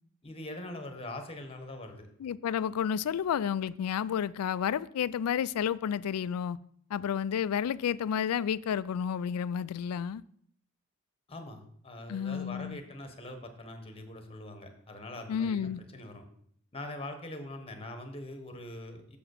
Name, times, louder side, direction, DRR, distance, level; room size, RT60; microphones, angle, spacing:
voice 1, 0.2-2.1 11.3-16.2 16.7-19.2, left 1 dB, 25° left, 1.2 m, -43 dB
voice 2, 2.2-6.6 6.9-10.2 12.1-12.8 15.3-15.8, left 8 dB, 85° left, 0.3 m, -31 dB
7.0 x 4.9 x 6.5 m
head